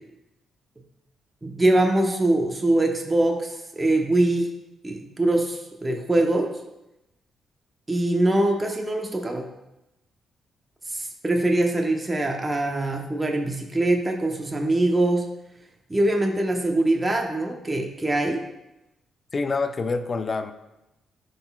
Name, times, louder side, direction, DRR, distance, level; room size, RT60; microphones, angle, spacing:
voice 1, 1.4-4.5 4.8-6.5 7.9-9.4 10.9-15.3 15.9-18.4, right 1 dB, 20° right, 2 dB, 0.9 m, -23 dB
voice 2, 19.3-20.5, left 4 dB, 40° left, 9 dB, 0.5 m, -26 dB
11.5 x 4.0 x 2.4 m, 0.92 s
supercardioid pair, 60°, 0 cm